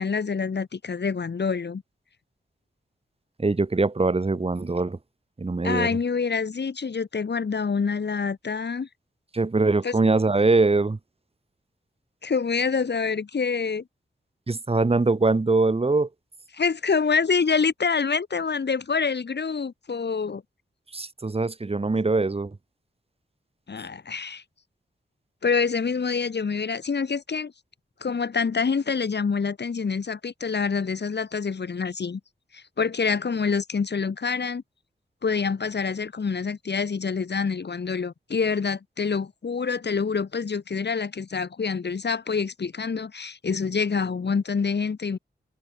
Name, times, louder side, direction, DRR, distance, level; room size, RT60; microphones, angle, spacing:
voice 1, 0.0-1.8 5.6-8.9 9.8-9.9 12.2-13.8 16.5-20.4 23.7-24.4 25.4-27.5 28.0-32.2 32.5-34.6 35.2-45.2, left 5 dB, 65° left, 3.5 m, -26 dB
voice 2, 3.4-5.0 5.4-6.0 9.3-11.0 14.5-16.1 20.9-22.6, right 3 dB, 30° right, 2.2 m, -22 dB
wide cardioid pair, 120°, 19 cm